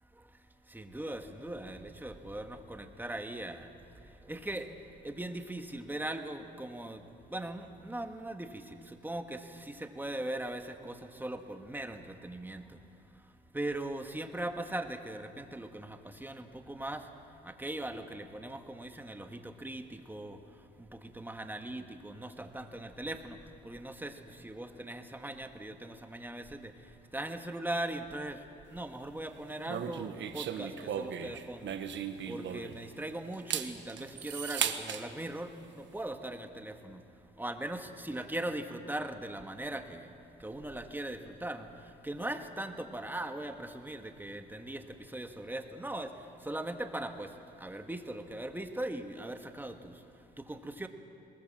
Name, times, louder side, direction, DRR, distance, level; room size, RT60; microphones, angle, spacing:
voice 1, 0.1-12.8 13.1-17.1 17.4-31.8 32.3-37.0 37.4-50.9, right 1 dB, 10° right, 6 dB, 1.6 m, -40 dB
sound 1, 29.7-32.9 33.3-35.0, right 9 dB, 65° right, 1.3 m, -36 dB
22.5 x 20.0 x 7.4 m, 2.6 s
cardioid pair, 90°, 20 cm